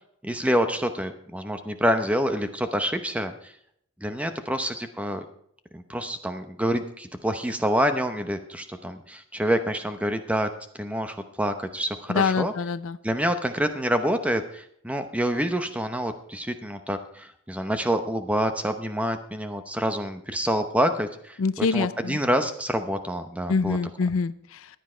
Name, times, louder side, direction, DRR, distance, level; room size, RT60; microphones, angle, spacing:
voice 1, 0.2-3.5 4.0-5.2 5.7-10.5 10.8-12.5 13.0-23.8, equal, 5° right, 8 dB, 0.8 m, -27 dB
voice 2, 12.1-13.0 21.4-22.2 23.5-24.7, left 4 dB, 70° left, 16 dB, 0.5 m, -25 dB
14.5 x 10.0 x 4.4 m, 0.70 s
head